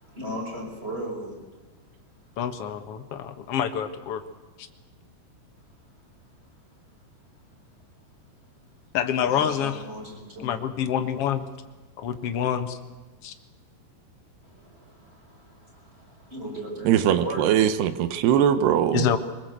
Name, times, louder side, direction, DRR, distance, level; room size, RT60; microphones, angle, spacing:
voice 1, 0.0-1.4 9.1-10.5 14.4-17.7, right 1 dB, 15° right, 0 dB, 6.3 m, -37 dB
voice 2, 2.4-4.2 4.6-4.7 8.9-9.8 10.4-11.5 12.0-12.8 13.2-13.3 18.9-19.2, left 9 dB, 55° left, 7 dB, 1.7 m, -27 dB
voice 3, 16.9-19.1, right 9 dB, 85° right, 12 dB, 3.3 m, -21 dB
24.0 x 21.0 x 8.1 m, 1.3 s
omnidirectional pair, 4.6 m